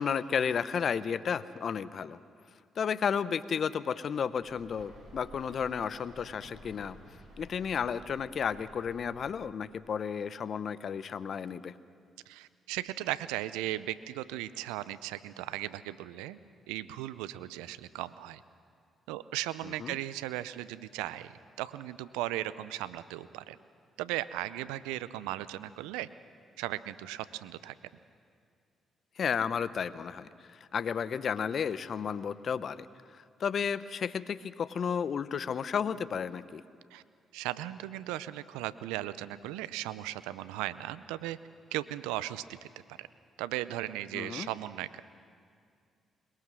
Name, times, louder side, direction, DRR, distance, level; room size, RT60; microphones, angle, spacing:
voice 1, 0.0-2.2 2.8-7.0 7.4-11.7 19.6-20.0 29.2-32.9 33.1-36.6 44.1-44.5, left 7 dB, 55° left, 16 dB, 0.7 m, -33 dB
sound 1, 4.4-9.4, right 1 dB, 60° right, 6.6 m, -53 dB
voice 2, 12.3-16.4 16.7-18.4 19.1-21.3 21.6-23.6 24.0-26.1 26.6-27.7 36.9-37.0 37.3-41.4 41.7-42.4 43.0-43.1 43.4-45.0, right 15 dB, 85° right, 15 dB, 0.5 m, -37 dB
22.0 x 21.5 x 6.2 m, 2.3 s
hypercardioid pair, 45°, 0 cm